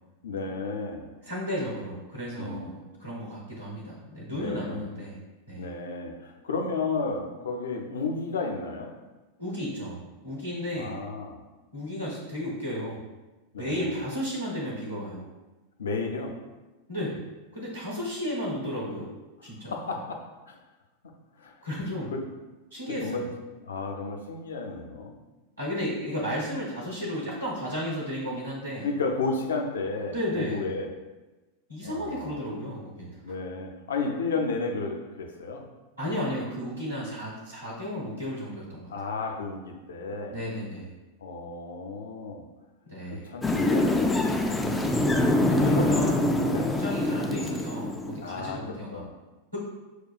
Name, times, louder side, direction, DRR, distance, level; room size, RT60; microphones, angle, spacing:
voice 1, 0.2-1.1 2.4-2.7 4.3-4.8 5.6-9.0 10.7-11.4 13.5-14.0 15.8-16.4 19.6-20.6 21.4-21.5 22.1-22.2 22.9-25.1 28.8-31.0 31.8-32.4 33.2-35.7 38.9-40.5 41.2-42.5 43.0-44.3 45.6-45.9 46.5-46.8 48.2-49.2, left 3 dB, 65° left, 3 dB, 0.5 m, -33 dB
voice 2, 1.3-5.2 5.5-5.7 9.4-11.0 11.7-13.0 13.6-15.3 16.9-17.2 17.5-19.1 19.4-19.7 21.6-22.1 22.7-23.2 25.6-28.9 30.1-30.7 31.7-33.1 36.0-38.9 40.3-40.9 42.9-43.3 45.5-49.0 49.5-49.6, equal, 90° right, -7 dB, 0.9 m, -33 dB
sound 1, 43.4-48.3, left 1 dB, 10° left, 0.3 m, -24 dB
6.2 x 2.3 x 2.3 m, 1.1 s
figure-of-eight pair, 90°, 0 cm